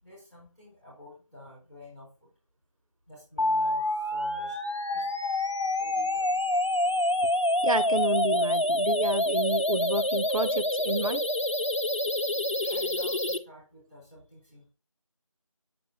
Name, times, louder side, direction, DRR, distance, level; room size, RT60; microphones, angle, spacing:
voice 1, 0.0-2.3 3.1-4.6 4.9-5.1 5.7-6.5 12.7-14.7, left 1 dB, 15° right, 3.5 m, -50 dB
sound 1, 3.4-13.4, left 1 dB, 60° left, 0.8 m, -27 dB
voice 2, 7.6-11.2, right 2 dB, 75° right, 0.6 m, -30 dB
7.7 x 5.8 x 2.2 m
figure-of-eight pair, 175°, 18 cm